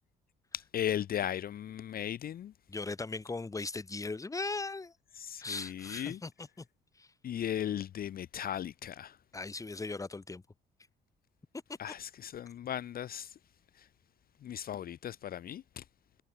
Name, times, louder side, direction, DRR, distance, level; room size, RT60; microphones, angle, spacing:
voice 1, 0.5-2.5 5.2-6.2 7.2-9.2 11.8-13.4 13.8-13.9 14.4-15.8, left 10 dB, 50° left, 0.5 m, -37 dB
voice 2, 2.7-4.9 5.4-6.5 7.0-7.1 9.3-10.4 11.9-12.0, left 3 dB, 15° left, 0.9 m, -38 dB
supercardioid pair, 60°, 19 cm